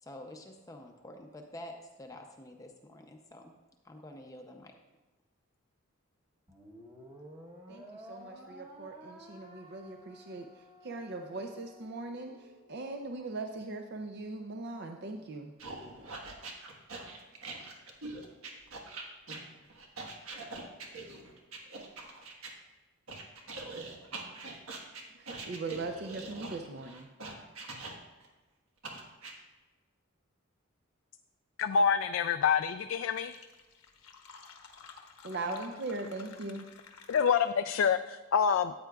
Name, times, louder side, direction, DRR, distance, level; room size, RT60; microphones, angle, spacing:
voice 1, 0.0-3.5 3.8-4.7, left 1 dB, 15° left, 3 dB, 0.6 m, -48 dB
sound 1, 6.5-13.0, equal, 20° right, 1.0 m, -53 dB
voice 2, 7.7-10.5 10.8-15.5 25.1-27.1 35.2-36.6, right 2 dB, 50° right, 4 dB, 0.5 m, -40 dB
sound 2, 15.6-22.5 23.1-28.3 28.8-29.3, right 3 dB, 80° right, 1.4 m, -43 dB
voice 3, 31.6-33.3 37.1-38.7, left 6 dB, 65° left, 9 dB, 0.3 m, -27 dB
Fill (with liquid), 32.7-32.8 33.0-37.8, left 5 dB, 90° left, 1.1 m, -53 dB
13.5 x 8.8 x 2.3 m, 1.2 s
head